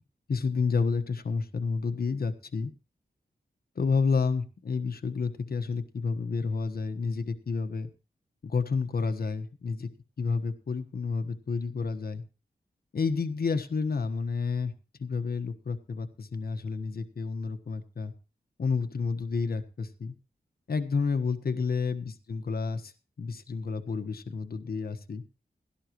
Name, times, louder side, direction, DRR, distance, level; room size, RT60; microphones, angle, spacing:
voice 1, 0.3-2.7 3.7-7.9 8.4-9.9 10.2-12.2 12.9-14.7 15.0-18.1 18.6-20.1 20.7-22.9 23.2-25.2, left 4 dB, 60° left, 8 dB, 1.3 m, -30 dB
17.0 x 12.5 x 3.1 m, 0.32 s
wide cardioid pair, 110°, 17 cm